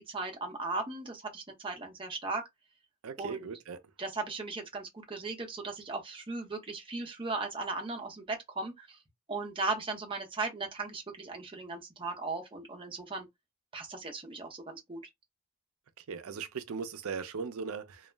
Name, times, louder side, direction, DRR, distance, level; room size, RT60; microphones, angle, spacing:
voice 1, 0.0-2.4 3.2-3.5 4.0-9.0 9.3-13.3 13.7-15.0, right 3 dB, 25° right, 0.7 m, -37 dB
voice 2, 3.0-3.8 16.0-18.1, right 5 dB, 70° right, 0.5 m, -38 dB
2.3 x 2.0 x 3.2 m
head